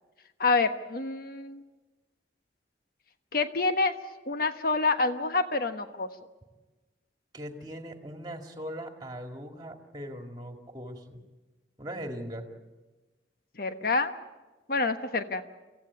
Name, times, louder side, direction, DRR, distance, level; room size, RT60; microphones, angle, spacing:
voice 1, 0.4-1.6 3.3-3.9 4.3-6.1 13.5-14.1 14.7-15.4, left 3 dB, 50° left, 8 dB, 1.2 m, -27 dB
voice 2, 7.3-11.2 11.8-12.5, equal, 20° right, 4 dB, 2.0 m, -40 dB
24.5 x 15.5 x 8.6 m, 1.2 s
head